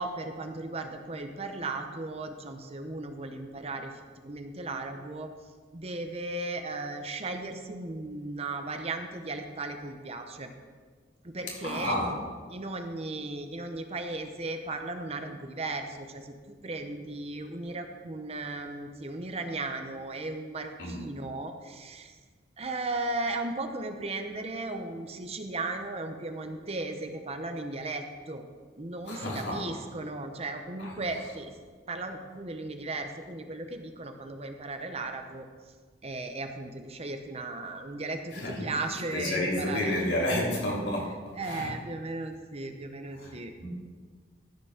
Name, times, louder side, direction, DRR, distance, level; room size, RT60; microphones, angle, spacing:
voice 1, 0.0-5.3 5.7-10.5 11.2-12.0 12.5-22.2 22.6-28.4 28.8-31.5 31.9-35.5 36.0-40.4 41.4-43.5, right 2 dB, 35° right, 6 dB, 0.9 m, -36 dB
voice 2, 11.6-12.1 20.8-21.0 29.1-29.6 30.8-30.9 38.3-38.7 39.1-41.1 41.4-41.7 43.2-43.3 43.6-43.7, left 1 dB, 85° left, -4 dB, 3.3 m, -30 dB
13.0 x 6.0 x 5.9 m, 1.5 s
head